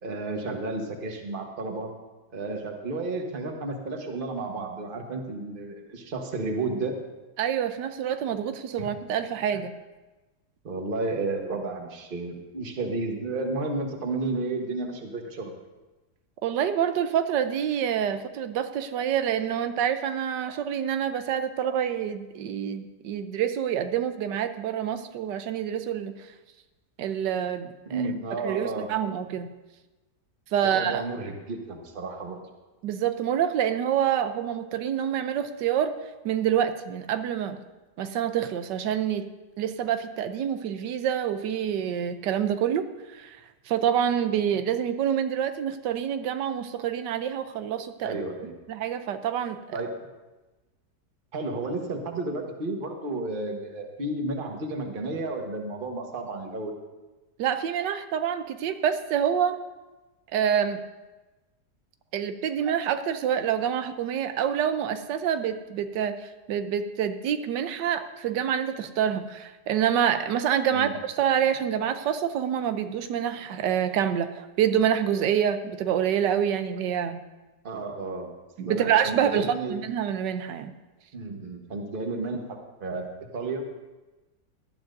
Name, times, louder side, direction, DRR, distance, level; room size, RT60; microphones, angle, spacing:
voice 1, 0.0-1.9 2.3-7.0 8.8-8.9 10.6-15.5 27.9-28.9 30.6-32.4 48.0-48.5 49.7-50.1 51.3-56.7 70.7-70.9 77.6-78.3 78.6-79.8 81.1-83.7, right 2 dB, 35° right, 2 dB, 1.3 m, -32 dB
voice 2, 7.4-9.7 16.4-26.3 27.0-28.0 28.4-29.5 30.5-31.0 32.8-35.9 36.2-37.6 38.0-39.3 39.6-43.4 43.7-48.2 48.7-49.8 57.4-59.6 60.3-60.8 62.1-77.2 78.6-80.7, right 9 dB, 90° right, 9 dB, 1.4 m, -27 dB
18.5 x 12.0 x 2.6 m, 1.1 s
omnidirectional pair, 1.8 m